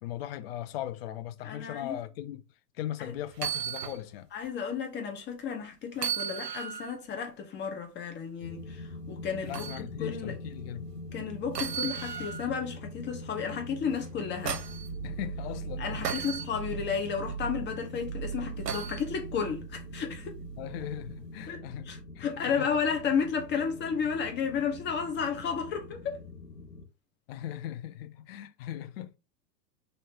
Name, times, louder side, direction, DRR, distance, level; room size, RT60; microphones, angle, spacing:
voice 1, 0.0-2.4 2.8-4.3 9.5-10.9 15.0-16.3 16.7-16.9 20.5-22.7 27.3-29.2, left 12 dB, 40° left, 0.5 m, -39 dB
voice 2, 1.4-1.9 3.0-3.1 4.3-9.7 10.0-10.4 11.1-14.6 15.8-20.4 21.5-21.6 21.9-26.2, left 6 dB, 20° left, 0.8 m, -32 dB
sound 1, 3.3-4.0 4.4-4.5 5.9-7.0 9.5-9.8 11.5-12.5 14.0-14.9 16.0-16.5 18.7-19.0 20.8-20.9, right 8 dB, 75° right, 0.7 m, -34 dB
sound 2, 8.4-26.9, left 2 dB, 80° left, 1.0 m, -44 dB
sound 3, 14.4-22.2, right 7 dB, 35° right, 0.8 m, -41 dB
3.1 x 2.8 x 2.9 m
figure-of-eight pair, 95°, 49 cm